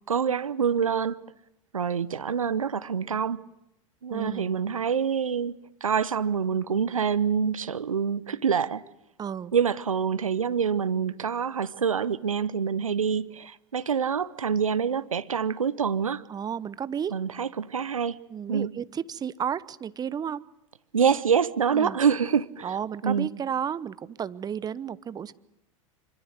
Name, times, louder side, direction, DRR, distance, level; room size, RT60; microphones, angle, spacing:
voice 1, 0.1-1.2 1.7-3.4 4.0-8.8 9.5-16.2 17.1-18.2 18.5-18.7 20.9-22.8 23.0-23.3, right 7 dB, 85° right, 0.9 m, -26 dB
voice 2, 4.1-4.5 9.2-9.5 16.3-17.2 18.3-20.4 21.7-22.0 22.6-25.3, right 8 dB, 25° right, 1.0 m, -32 dB
26.0 x 24.5 x 8.0 m
hypercardioid pair, 90°, 17 cm